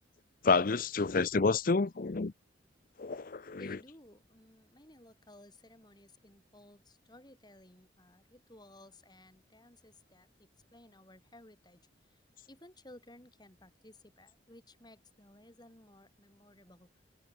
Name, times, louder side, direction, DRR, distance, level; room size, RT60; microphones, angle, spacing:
voice 1, 0.4-2.3 3.0-3.6, left 4 dB, 50° left, 0.6 m, -29 dB
voice 2, 3.6-16.9, left 1 dB, 20° left, 8.0 m, -57 dB
head